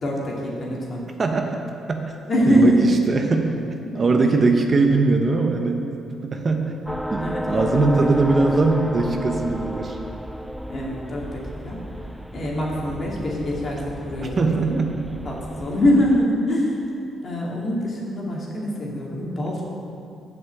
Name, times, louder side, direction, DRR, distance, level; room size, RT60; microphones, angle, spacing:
voice 1, 0.0-1.0 2.3-2.9 3.8-4.3 7.2-7.9 10.7-12.1 12.3-16.8 17.2-19.6, equal, 45° left, -3 dB, 2.4 m, -24 dB
voice 2, 1.2-1.6 1.9-2.1 2.5-2.7 3.1-5.8 6.2-6.7 7.1-10.0 14.4-15.1, right 3 dB, 40° right, 4 dB, 0.8 m, -21 dB
sound 1, 6.9-16.3, equal, ahead, 0.3 m, -32 dB
7.8 x 5.9 x 7.6 m, 2.6 s
cardioid pair, 90°, 0 cm